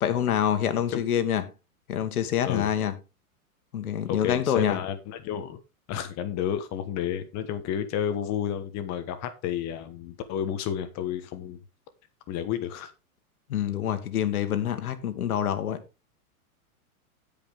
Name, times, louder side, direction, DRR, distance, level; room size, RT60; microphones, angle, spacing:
voice 1, 0.0-1.4 1.9-2.9 3.7-4.8 13.5-15.8, left 10 dB, 80° left, 1.7 m, -26 dB
voice 2, 4.0-5.6 5.9-11.6 12.3-12.9, left 9 dB, 35° left, 1.3 m, -31 dB
16.0 x 5.3 x 3.7 m
hypercardioid pair, 120°, 44 cm